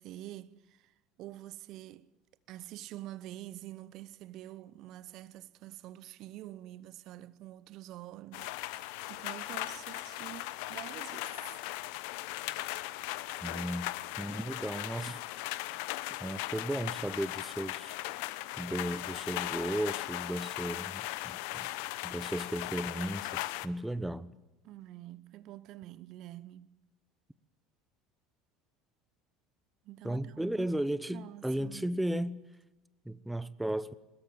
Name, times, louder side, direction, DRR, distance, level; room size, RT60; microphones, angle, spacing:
voice 1, 0.0-2.1 2.5-11.6 24.6-26.7 29.8-30.7 31.1-31.9, right 14 dB, 55° right, 0.7 m, -47 dB
sound 1, 8.3-23.7, left 18 dB, 65° left, 0.8 m, -38 dB
voice 2, 13.4-15.2 16.2-18.0 18.6-21.7 22.0-24.3 30.0-32.5 33.0-33.9, right 1 dB, 5° right, 0.9 m, -35 dB
23.0 x 20.5 x 7.3 m
figure-of-eight pair, 70°, 0 cm